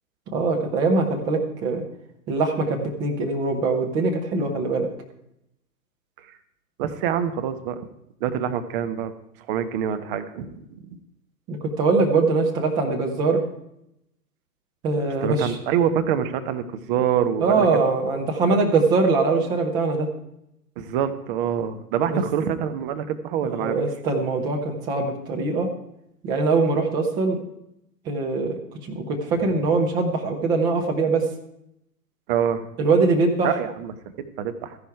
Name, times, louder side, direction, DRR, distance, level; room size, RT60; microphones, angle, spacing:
voice 1, 0.3-1.8 2.3-4.9 11.5-13.4 14.8-15.6 17.4-20.1 22.1-22.2 23.4-25.7 26.2-27.4 28.1-31.2 32.8-33.5, right 3 dB, 10° right, 3 dB, 0.5 m, -22 dB
voice 2, 6.8-7.9 8.2-9.1 9.5-11.0 15.2-17.7 18.5-18.6 20.8-23.8 32.3-32.7 33.4-34.8, right 8 dB, 35° right, 9 dB, 1.2 m, -26 dB
13.5 x 10.5 x 4.6 m, 0.81 s
hypercardioid pair, 125°, 50 cm